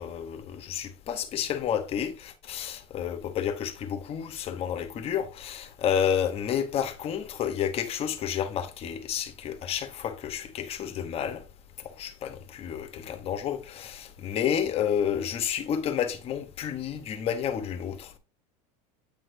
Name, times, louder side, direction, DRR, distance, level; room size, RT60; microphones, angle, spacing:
voice 1, 0.0-11.4 12.0-18.2, left 8 dB, 30° left, 0.9 m, -30 dB
8.9 x 6.0 x 2.6 m
supercardioid pair, 160°, 20 cm